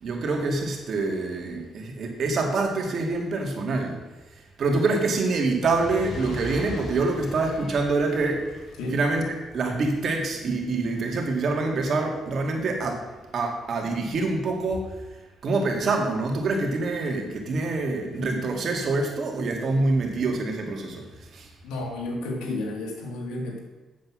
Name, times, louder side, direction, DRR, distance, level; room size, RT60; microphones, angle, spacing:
voice 1, 0.0-4.0 4.6-8.6 8.9-13.0 13.3-14.9 15.4-21.1 21.3-21.5, right 3 dB, 55° right, 2 dB, 2.3 m, -26 dB
Fire, 5.5-11.9 12.6-12.7, left 1 dB, 65° left, 2.8 m, -40 dB
voice 2, 21.6-23.6, left 2 dB, 90° left, 1 dB, 2.4 m, -31 dB
8.5 x 8.0 x 6.2 m, 1.2 s
cardioid pair, 90°, 0 cm